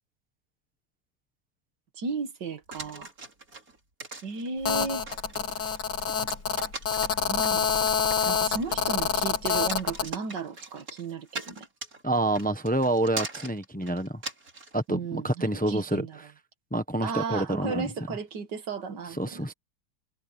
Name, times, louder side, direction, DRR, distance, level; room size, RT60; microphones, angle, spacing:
voice 1, 1.9-3.1 4.2-5.1 7.3-7.7 8.3-11.7 14.9-16.2 17.0-19.5, right 5 dB, 80° right, 2.3 m, -34 dB
sound 1, 2.7-14.8, right 3 dB, 55° right, 4.2 m, -41 dB
Telephone, 4.6-10.1, left 6 dB, 85° left, 3.2 m, -27 dB
voice 2, 12.0-14.2 14.7-16.1 16.7-17.9 19.2-19.5, right 1 dB, 5° left, 0.9 m, -27 dB
omnidirectional pair, 1.8 m